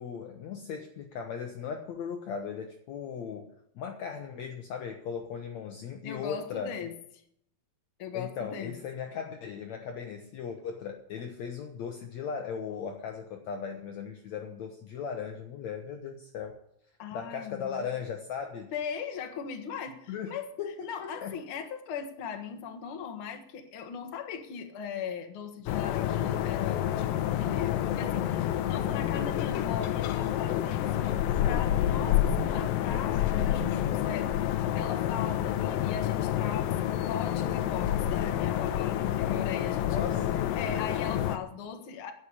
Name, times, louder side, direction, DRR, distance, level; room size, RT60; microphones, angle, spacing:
voice 1, 0.0-6.7 8.1-16.6 17.1-18.7 20.1-20.3 20.6-21.4 39.9-40.4, left 6 dB, 65° left, 4 dB, 2.0 m, -37 dB
voice 2, 6.0-6.9 8.0-8.7 17.0-17.9 18.7-20.5 20.8-30.9 31.4-36.8 37.1-40.0 40.6-42.1, left 7 dB, 50° left, 6 dB, 1.8 m, -39 dB
sound 1, 25.7-41.4, left 11 dB, 85° left, 2.5 m, -28 dB
10.5 x 8.2 x 10.0 m, 0.72 s
omnidirectional pair, 4.0 m